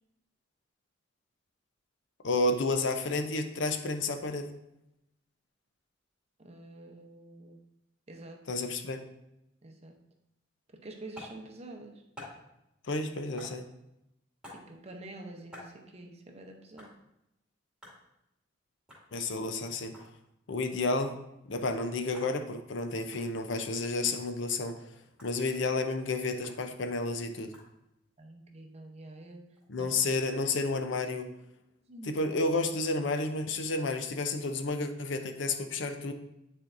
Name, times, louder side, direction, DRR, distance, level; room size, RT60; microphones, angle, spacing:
voice 1, 2.2-4.5 8.5-9.0 12.8-13.7 19.1-19.9 20.5-21.2 21.5-24.8 25.2-27.5 29.7-31.3 32.0-36.1, left 3 dB, 70° left, 7 dB, 0.6 m, -31 dB
voice 2, 6.4-7.6 8.1-8.4 9.6-9.9 10.7-12.0 14.5-16.9 28.2-29.5 29.8-29.9 31.9-32.2, right 2 dB, 35° right, 3 dB, 0.7 m, -47 dB
sound 1, 11.1-11.4 12.2-12.4 13.4-13.6 14.4-14.7 15.5-15.7 16.8-16.9 17.8-18.0 18.9-19.1 19.8-20.1 21.0-21.2 22.1-22.4 23.1-23.3 24.1-24.3 25.2-25.3 26.4-26.6 27.5-27.7 29.3-30.0, left 1 dB, 5° right, 2.3 m, -49 dB
9.4 x 4.4 x 2.6 m, 0.86 s
head